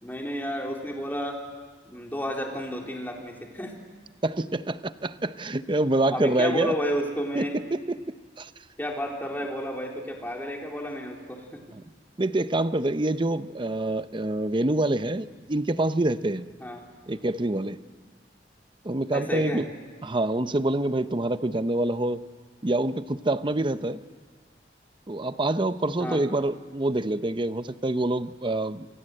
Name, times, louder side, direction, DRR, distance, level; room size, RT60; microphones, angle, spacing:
voice 1, 0.0-1.4 1.8-3.7 6.1-7.5 8.8-11.6 16.6-16.8 19.1-19.6 26.0-26.2, equal, 10° left, 0 dB, 3.8 m, -31 dB
voice 2, 4.2-6.7 7.3-8.0 8.4-8.5 11.8-11.9 12.2-16.4 17.1-17.8 18.8-19.6 20.0-22.2 22.6-24.0 25.1-28.9, right 2 dB, 30° right, 12 dB, 0.8 m, -26 dB
28.5 x 26.0 x 7.8 m, 1.4 s
head